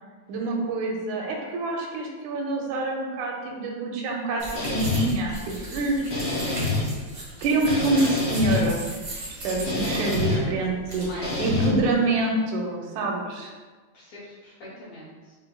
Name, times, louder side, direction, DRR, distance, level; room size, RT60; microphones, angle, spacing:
voice 1, 0.3-4.4 4.7-6.0 7.4-8.8 9.4-13.5, right 2 dB, 85° right, 0 dB, 2.0 m, -26 dB
sound 1, 4.4-11.9, right 1 dB, 55° right, 0.9 m, -38 dB
sound 2, 4.6-5.0 6.1-6.8 7.7-8.6 9.7-10.4 11.2-11.7, left 3 dB, 50° left, 2.1 m, -26 dB
voice 2, 9.9-10.6 11.0-11.3 11.5-12.0 13.9-15.4, equal, 70° left, -8 dB, 1.6 m, -42 dB
6.3 x 2.7 x 2.2 m, 1.4 s
omnidirectional pair, 3.4 m